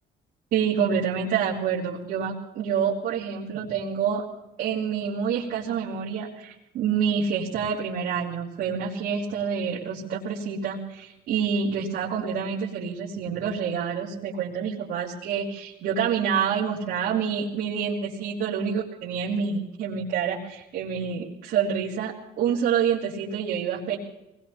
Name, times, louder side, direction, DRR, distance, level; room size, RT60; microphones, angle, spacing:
voice 1, 0.5-4.2 4.6-24.0, right 7 dB, 75° right, -6 dB, 3.4 m, -27 dB
24.5 x 20.0 x 2.9 m, 0.92 s
cardioid pair, 110°, 17 cm